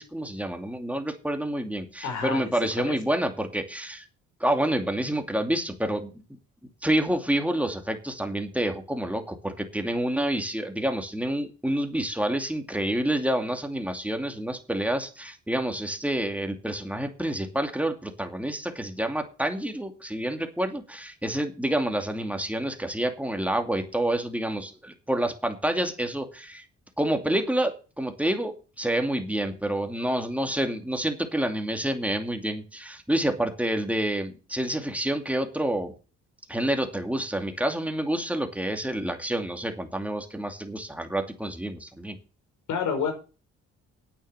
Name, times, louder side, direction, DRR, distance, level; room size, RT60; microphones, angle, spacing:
voice 1, 0.0-4.0 4.4-6.1 6.8-26.7 27.0-35.9 36.5-42.2, right 1 dB, 5° right, 5 dB, 2.5 m, -28 dB
voice 2, 2.0-2.5 2.8-3.0 42.7-43.1, left 6 dB, 80° left, 4 dB, 5.3 m, -28 dB
9.3 x 8.8 x 6.8 m, 0.34 s
cardioid pair, 90°, 30 cm